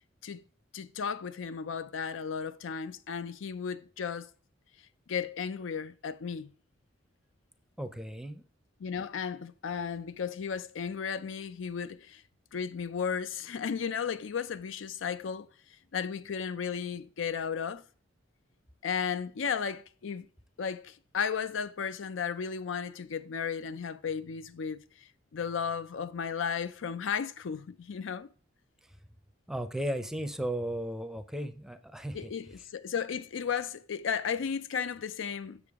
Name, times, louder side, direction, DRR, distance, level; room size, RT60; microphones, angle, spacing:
voice 1, 0.7-4.3 5.1-6.5 8.8-12.2 12.5-15.5 15.9-17.8 18.8-20.3 20.6-28.3 32.1-35.6, left 6 dB, 85° left, 0.5 m, -34 dB
voice 2, 7.8-8.4 29.5-32.3, right 1 dB, 5° right, 0.5 m, -35 dB
7.0 x 6.8 x 3.5 m
head